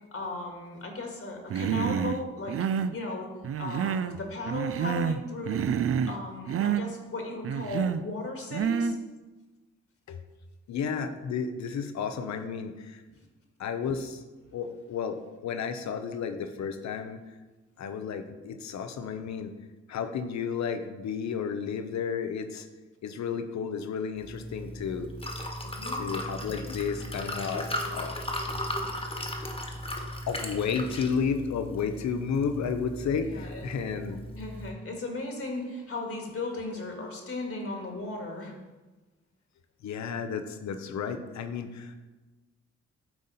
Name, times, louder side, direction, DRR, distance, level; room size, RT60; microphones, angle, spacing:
voice 1, 0.1-2.6 2.9-3.3 3.6-5.7 6.1-9.0 13.1-13.2 19.2-19.3 25.6-26.0 33.2-33.7 34.4-38.6, left 2 dB, 50° left, 1 dB, 1.8 m, -36 dB
Human voice, 1.5-2.2 2.5-3.0 3.4-4.2 4.5-5.2 5.5-6.2 6.5-6.8 7.4-8.0 8.5-9.0, right 7 dB, 50° right, 0.4 m, -28 dB
voice 2, 10.7-13.0 13.6-14.2 14.5-17.2 17.8-19.5 19.9-22.7 23.0-25.1 25.9-28.2 30.3-34.2 39.8-42.0, left 6 dB, 65° left, 8 dB, 0.8 m, -32 dB
Liquid, 24.2-34.7, left 1 dB, 20° left, 1.4 m, -36 dB
9.1 x 3.7 x 4.1 m, 1.2 s
supercardioid pair, 50°, 30 cm